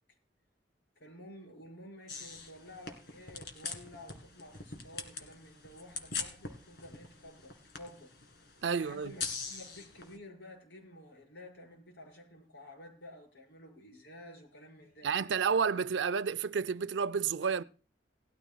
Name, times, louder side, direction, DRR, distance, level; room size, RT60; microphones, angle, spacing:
voice 1, 1.0-8.1 8.8-15.1, left 1 dB, 80° left, 5.4 m, -52 dB
sound 1, 2.1-10.2, left 5 dB, 60° left, 2.1 m, -43 dB
voice 2, 8.6-9.1 15.0-17.6, right 6 dB, 85° right, 0.5 m, -30 dB
19.0 x 13.0 x 2.3 m
head